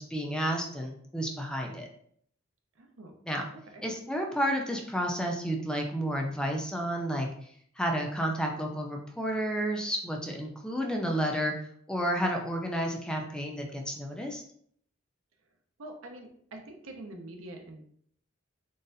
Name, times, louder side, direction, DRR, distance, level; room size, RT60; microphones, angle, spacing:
voice 1, 0.0-1.9 3.3-3.5 3.8-7.3 7.8-14.4, equal, 5° left, 1 dB, 0.4 m, -31 dB
voice 2, 2.8-3.1 3.7-3.8 15.8-17.9, right 1 dB, 90° right, 3 dB, 0.6 m, -45 dB
3.9 x 2.5 x 2.6 m, 0.63 s
head